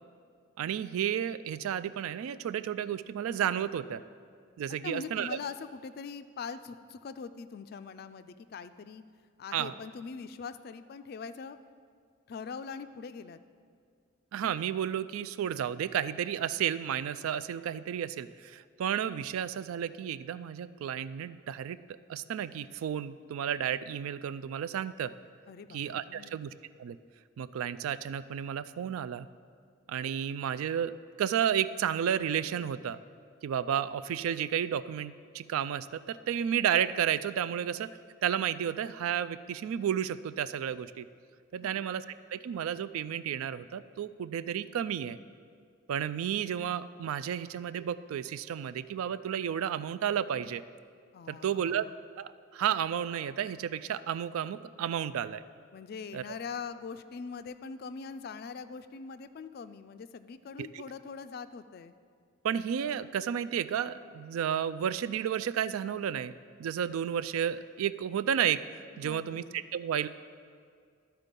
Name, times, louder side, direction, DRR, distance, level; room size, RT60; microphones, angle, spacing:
voice 1, 0.6-4.0 4.6-5.4 9.5-9.7 14.3-21.8 22.1-25.1 25.7-26.5 26.8-27.0 27.4-29.3 29.9-30.9 31.2-33.0 33.4-37.9 38.2-41.1 41.5-45.2 45.9-50.6 51.3-51.9 52.2-55.4 56.1-56.2 60.6-60.8 62.4-66.3 66.6-70.1, right 9 dB, 85° right, 14 dB, 0.3 m, -32 dB
voice 2, 4.8-9.0 9.4-11.6 12.3-13.4 25.5-26.4 41.6-41.9 51.1-51.9 55.7-61.9 69.0-69.6, left 5 dB, 45° left, 12 dB, 0.3 m, -42 dB
12.5 x 4.5 x 5.2 m, 2.1 s
head